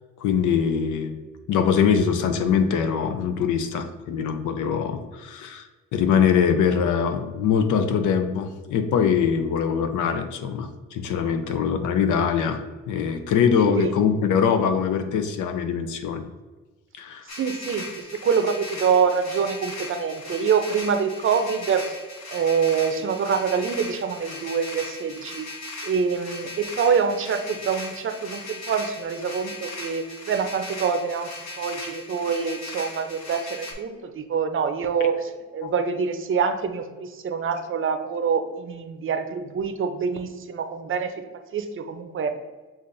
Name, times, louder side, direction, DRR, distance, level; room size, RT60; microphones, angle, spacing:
voice 1, 0.2-1.2 1.5-5.7 5.9-12.6 12.9-16.2 16.9-17.2 35.6-35.7, left 7 dB, 80° left, 8 dB, 0.5 m, -23 dB
voice 2, 13.6-13.9 17.3-22.0 22.3-25.5 25.8-31.3 31.6-35.2 35.5-41.1 41.5-42.3, right 6 dB, 45° right, 7 dB, 0.6 m, -25 dB
sound 1, 17.3-33.7, left 2 dB, 60° left, 0.9 m, -38 dB
7.0 x 2.5 x 2.6 m, 1.3 s
cardioid pair, 90°, 30 cm